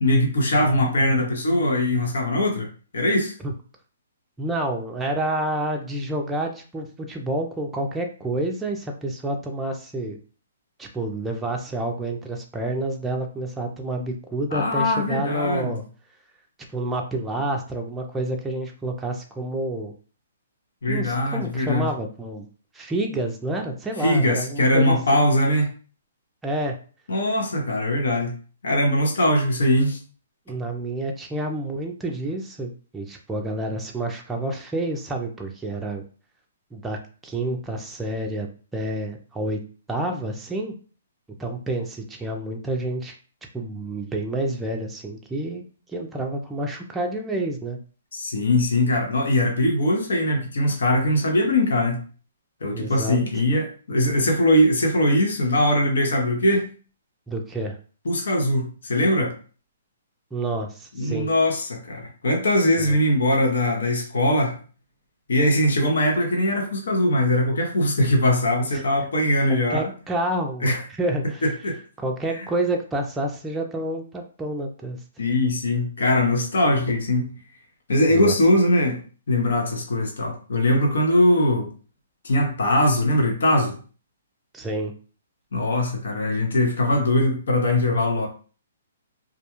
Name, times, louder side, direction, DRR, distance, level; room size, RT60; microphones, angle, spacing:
voice 1, 0.0-2.7 2.9-3.3 14.5-15.8 20.8-21.9 24.0-25.7 27.1-28.4 28.6-30.0 48.1-52.0 52.6-56.7 58.1-59.3 61.0-64.6 65.3-69.9 70.6-70.8 71.4-71.8 75.2-77.4 77.9-79.0 79.3-81.7 82.2-83.8 85.5-88.3, left 1 dB, 75° left, 2 dB, 0.7 m, -21 dB
voice 2, 4.4-10.2 10.8-15.8 16.7-19.9 20.9-22.5 22.7-25.0 26.4-26.8 30.5-36.0 36.7-38.5 38.7-39.6 39.9-40.7 41.4-43.2 43.5-45.6 45.9-47.8 52.7-53.2 57.3-57.8 60.3-61.3 62.8-62.9 68.7-68.8 69.5-71.5 72.0-75.0 78.1-78.3 84.5-84.9, right 1 dB, 10° right, 1 dB, 0.4 m, -29 dB
2.3 x 2.2 x 2.9 m, 0.39 s
hypercardioid pair, 145°, 0 cm